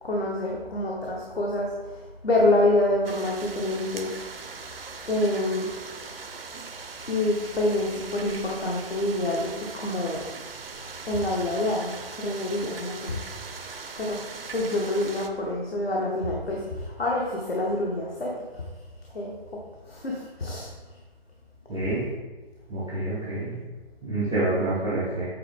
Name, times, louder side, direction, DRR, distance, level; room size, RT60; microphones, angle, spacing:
voice 1, 0.0-4.3 5.1-5.7 7.1-10.2 11.1-13.2 14.0-14.2 14.5-18.6 19.1-20.7, left 2 dB, 75° left, -3 dB, 1.2 m, -27 dB
sound 1, 3.0-15.3, right 4 dB, 65° right, 0.7 m, -40 dB
voice 2, 21.7-22.1 22.7-23.5 24.0-25.3, right 2 dB, 5° left, -14 dB, 0.4 m, -27 dB
8.4 x 4.0 x 3.6 m, 1.2 s
figure-of-eight pair, 140°, 31 cm